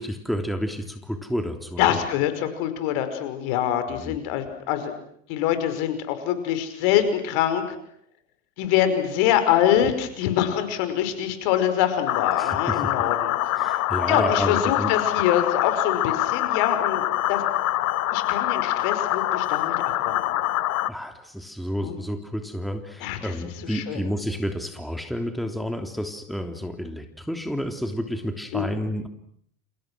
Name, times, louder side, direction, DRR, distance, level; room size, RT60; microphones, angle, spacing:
voice 1, 0.0-2.0 3.9-4.2 12.4-12.9 13.5-14.9 20.9-29.1, equal, ahead, 6 dB, 3.2 m, -30 dB
voice 2, 1.8-4.9 5.3-7.8 8.6-13.3 14.1-17.4 18.1-19.8 20.1-20.5 21.8-22.0 23.0-23.3 23.7-24.1 28.5-28.6, left 10 dB, 60° left, 9 dB, 5.5 m, -24 dB
sound 1, 12.1-20.9, left 14 dB, 80° left, 1.1 m, -25 dB
29.5 x 28.5 x 6.3 m, 0.65 s
hypercardioid pair, 85°, 41 cm